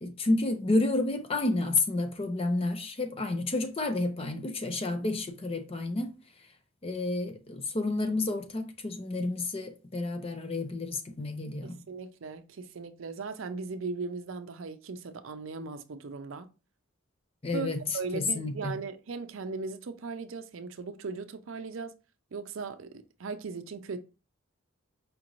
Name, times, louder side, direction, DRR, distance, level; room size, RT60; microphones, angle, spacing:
voice 1, 0.0-6.2 6.8-11.8 17.4-17.8 18.1-18.7, left 2 dB, 25° left, 0.5 m, -30 dB
voice 2, 11.6-16.5 17.5-17.7 17.9-21.9 22.3-24.0, right 4 dB, 65° right, 0.5 m, -38 dB
5.0 x 2.5 x 3.0 m
head